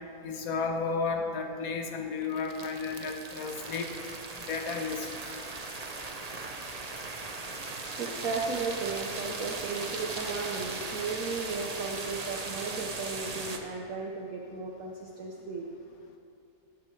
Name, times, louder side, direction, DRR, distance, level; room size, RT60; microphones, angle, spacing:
voice 1, 0.2-3.9 4.5-5.1, left 4 dB, 60° left, 4 dB, 1.4 m, -32 dB
sound 1, 2.1-13.6, right 3 dB, 35° right, 0.6 m, -38 dB
voice 2, 8.0-15.7, right 4 dB, 60° right, -1 dB, 1.2 m, -35 dB
16.0 x 9.9 x 3.2 m, 2.4 s
omnidirectional pair, 1.7 m